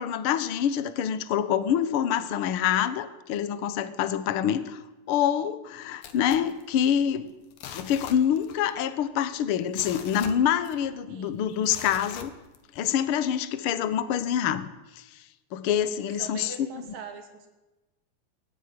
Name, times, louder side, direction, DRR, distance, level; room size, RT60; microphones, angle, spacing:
voice 1, 0.0-4.8 5.1-7.3 7.7-12.3 12.7-15.2 15.5-16.5, left 9 dB, 60° left, 13 dB, 1.5 m, -26 dB
sound 1, 6.0-7.1 7.5-8.7 9.0-9.1 9.5-11.0 11.6-12.9 13.4-13.5, left 8 dB, 80° left, 3.2 m, -42 dB
voice 2, 11.1-11.4 16.2-17.5, right 5 dB, 85° right, 4 dB, 4.4 m, -42 dB
22.0 x 14.0 x 9.8 m, 1.1 s
omnidirectional pair, 3.9 m